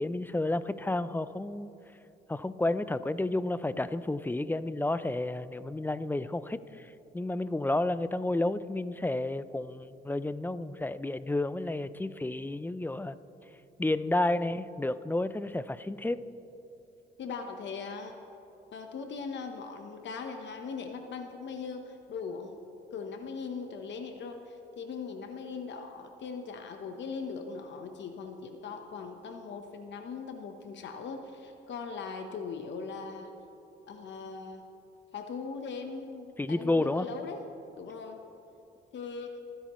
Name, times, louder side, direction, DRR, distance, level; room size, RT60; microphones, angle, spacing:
voice 1, 0.0-1.7 2.3-13.2 13.8-16.2 36.4-37.1, left 2 dB, 10° left, 14 dB, 0.4 m, -31 dB
voice 2, 17.2-18.2 18.7-22.6 22.9-33.3 33.9-34.6 35.1-37.4 37.8-38.2 38.9-39.4, left 5 dB, 65° left, 5 dB, 1.0 m, -40 dB
24.5 x 10.0 x 3.1 m, 2.9 s
cardioid pair, 90°, 20 cm